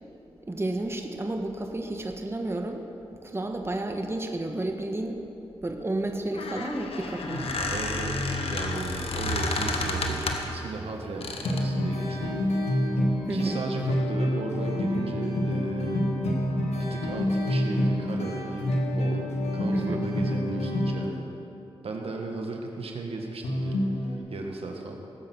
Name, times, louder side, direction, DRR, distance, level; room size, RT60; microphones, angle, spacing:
voice 1, 0.5-2.8 3.2-5.2 5.6-7.5 13.3-13.6 19.7-20.0, right 2 dB, 25° right, 3 dB, 1.3 m, -31 dB
Squeak, 6.2-10.6 11.2-11.7, left 2 dB, 65° left, 1.5 m, -30 dB
voice 2, 7.7-12.4 13.3-16.0 16.8-18.6 18.9-21.3 21.8-23.8 24.3-24.9, right 3 dB, 70° right, 2 dB, 1.6 m, -36 dB
sound 1, 11.4-21.1 23.4-24.2, left 1 dB, 85° left, 1.6 m, -27 dB
19.0 x 7.7 x 6.1 m, 2.9 s
cardioid pair, 50°, 11 cm